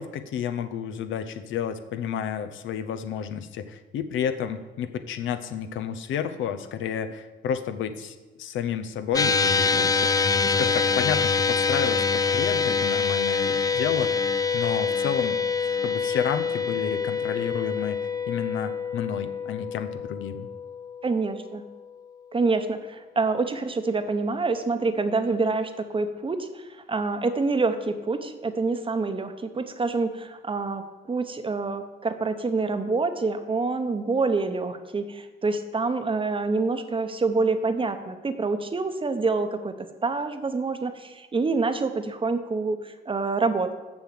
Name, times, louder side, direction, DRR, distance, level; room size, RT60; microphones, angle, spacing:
voice 1, 0.0-10.1 10.4-14.2 14.5-15.4 15.8-18.0 18.3-20.5, left 8 dB, 75° left, 9 dB, 0.7 m, -31 dB
sound 1, 9.1-21.7, left 5 dB, 20° left, 0.3 m, -25 dB
voice 2, 21.0-21.6 22.3-43.7, right 3 dB, 25° right, 9 dB, 0.9 m, -27 dB
7.1 x 6.4 x 7.6 m, 1.2 s
cardioid pair, 90°, 20 cm